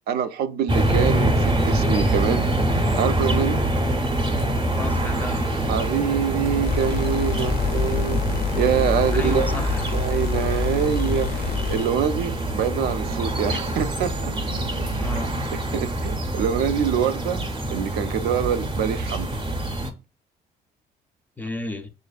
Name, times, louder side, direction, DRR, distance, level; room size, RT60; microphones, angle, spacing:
voice 1, 0.1-2.5 3.0-3.6 5.7-8.2 8.6-9.5 9.9-14.3 15.7-17.4 17.7-19.3, right 8 dB, 70° right, 0.4 m, -25 dB
sound 1, 0.7-19.9, right 1 dB, 30° right, 0.7 m, -25 dB
voice 2, 4.7-5.4 9.1-9.8 15.0-15.3 21.4-21.9, left 2 dB, 10° left, 0.5 m, -32 dB
sound 2, 4.9-15.4, right 3 dB, 90° right, 0.8 m, -43 dB
sound 3, 6.6-11.9, left 7 dB, 65° left, 0.4 m, -27 dB
6.3 x 2.5 x 2.3 m
cardioid pair, 110°, 17 cm